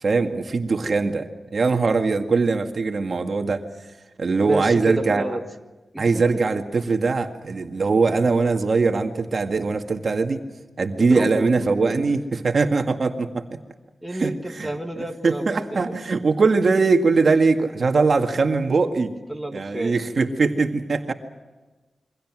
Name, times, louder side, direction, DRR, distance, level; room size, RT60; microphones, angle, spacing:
voice 1, 0.0-1.3 1.5-3.7 4.2-5.2 6.0-10.4 10.8-13.6 14.1-14.7 15.0-19.1 19.5-21.1, right 4 dB, 50° right, 4 dB, 2.0 m, -21 dB
voice 2, 4.4-5.4 5.9-6.6 11.0-12.0 14.0-16.0 19.3-20.0, right 1 dB, 5° right, 3 dB, 1.7 m, -30 dB
28.0 x 24.0 x 6.3 m, 1.2 s
wide cardioid pair, 135°, 0 cm